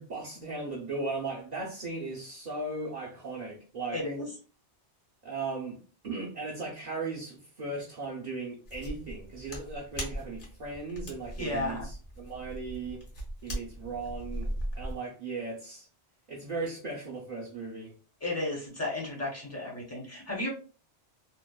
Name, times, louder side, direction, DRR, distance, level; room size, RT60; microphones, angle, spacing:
voice 1, 0.0-4.0 5.2-5.8 6.0-13.0 13.4-15.9 16.3-17.9, right 3 dB, 50° right, 0.5 m, -37 dB
voice 2, 3.9-4.3 11.4-11.9 18.2-20.5, left 2 dB, 20° left, 0.6 m, -33 dB
sound 1, 8.7-15.0, equal, 50° left, 1.0 m, -39 dB
2.7 x 2.0 x 2.2 m
omnidirectional pair, 1.2 m